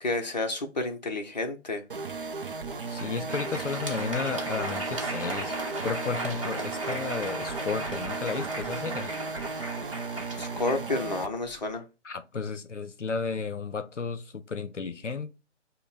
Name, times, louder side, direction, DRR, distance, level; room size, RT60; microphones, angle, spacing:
voice 1, 0.0-1.8 10.4-11.8, left 2 dB, 35° left, 0.7 m, -30 dB
sound 1, 1.9-11.3, right 4 dB, 50° right, 0.5 m, -36 dB
voice 2, 2.9-5.6 5.8-9.1 12.0-15.3, left 5 dB, 80° left, 0.7 m, -33 dB
Crowd, 2.9-11.7, right 2 dB, 25° right, 0.9 m, -36 dB
5.3 x 2.1 x 4.0 m
figure-of-eight pair, 150°, 36 cm